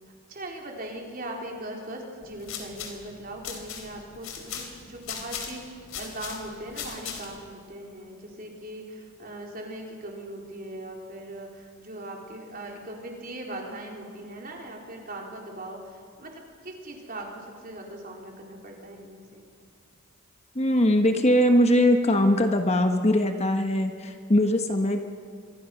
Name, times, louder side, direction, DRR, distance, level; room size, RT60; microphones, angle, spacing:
voice 1, 0.3-19.5, right 1 dB, 40° right, 0 dB, 4.1 m, -40 dB
sound 1, 2.2-7.5, left 7 dB, 65° left, 3.6 m, -39 dB
voice 2, 20.5-25.0, left 1 dB, 30° left, 5 dB, 1.2 m, -21 dB
29.0 x 24.0 x 6.0 m, 2.3 s
head